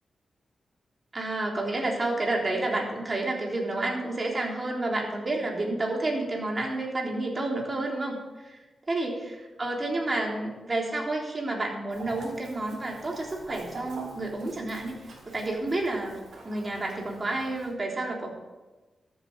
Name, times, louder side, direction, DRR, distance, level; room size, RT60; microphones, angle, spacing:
voice 1, 1.1-8.6 8.9-14.9 15.3-16.2 16.4-18.3, right 2 dB, 35° right, -1 dB, 3.5 m, -30 dB
Chicken rooster, 11.9-17.7, right 2 dB, 80° right, 2.9 m, -46 dB
13.0 x 8.0 x 6.3 m, 1.2 s
cardioid pair, 70°, 0 cm